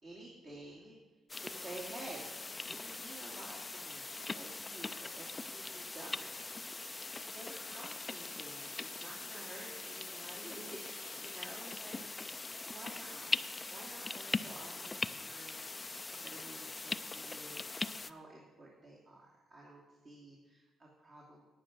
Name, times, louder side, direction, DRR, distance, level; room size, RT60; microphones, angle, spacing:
voice 1, 0.0-1.0 1.4-2.4 2.6-4.1 4.3-6.7 7.3-12.0 12.7-13.4 13.7-15.9 16.1-17.7 18.0-21.4, right 2 dB, 45° right, -4 dB, 2.6 m, -51 dB
sound 1, 1.3-18.1, left 3 dB, 20° left, 0.4 m, -41 dB
10.0 x 9.4 x 6.1 m, 1.2 s
cardioid pair, 100°, 0 cm